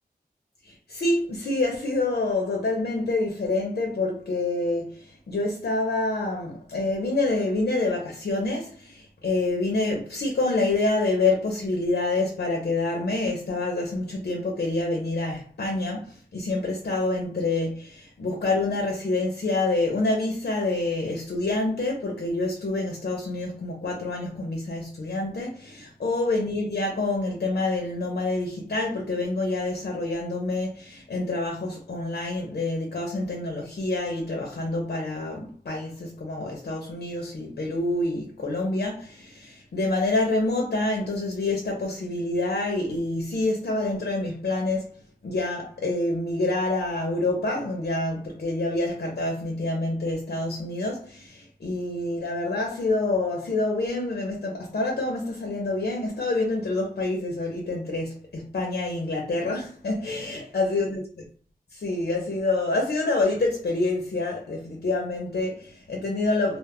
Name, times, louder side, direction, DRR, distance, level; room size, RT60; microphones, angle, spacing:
voice 1, 0.6-44.9 45.2-61.0 61.7-66.6, left 2 dB, 70° left, 0.6 m, -27 dB
2.1 x 2.1 x 3.5 m
wide cardioid pair, 60°, 17 cm